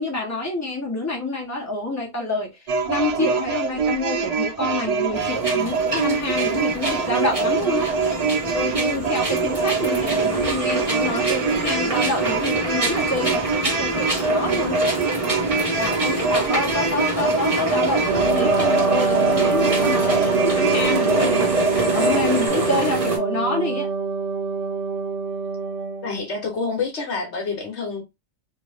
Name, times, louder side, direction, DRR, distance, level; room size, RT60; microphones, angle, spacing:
voice 1, 0.0-2.5 2.9-7.9 8.5-14.8 15.8-21.5 21.9-23.9, left 2 dB, 15° left, 1.2 m, -27 dB
sound 1, 2.7-22.5, right 4 dB, 55° right, 0.4 m, -24 dB
sound 2, 5.1-23.2, right 1 dB, 30° right, 1.2 m, -26 dB
Wind instrument woodwind instrument, 18.0-26.1, right 4 dB, 80° right, 1.0 m, -24 dB
voice 2, 26.0-28.0, left 4 dB, 70° left, 1.3 m, -27 dB
2.8 x 2.6 x 3.4 m
omnidirectional pair, 1.2 m